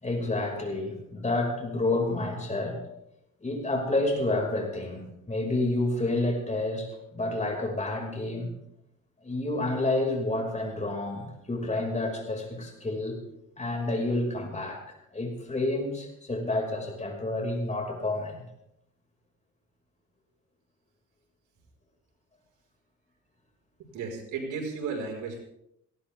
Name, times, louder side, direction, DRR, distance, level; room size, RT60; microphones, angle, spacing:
voice 1, 0.0-2.8 3.4-8.5 9.2-13.2 13.6-14.8 15.1-18.4, left 2 dB, 25° left, 2 dB, 5.5 m, -29 dB
voice 2, 23.9-25.4, right 5 dB, 85° right, 1 dB, 5.0 m, -34 dB
20.0 x 17.5 x 3.6 m, 0.80 s
cardioid pair, 90°, 30 cm